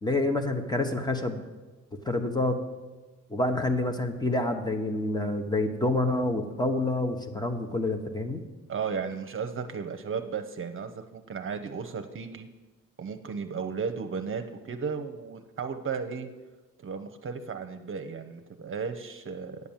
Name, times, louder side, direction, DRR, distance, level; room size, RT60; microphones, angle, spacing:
voice 1, 0.0-1.4 2.0-2.6 3.3-8.4, left 2 dB, 15° left, 6 dB, 1.2 m, -27 dB
voice 2, 8.7-12.5 13.0-16.3 16.8-19.6, right 6 dB, 45° right, 8 dB, 0.8 m, -34 dB
9.5 x 7.2 x 7.3 m, 1.2 s
cardioid pair, 90°, 30 cm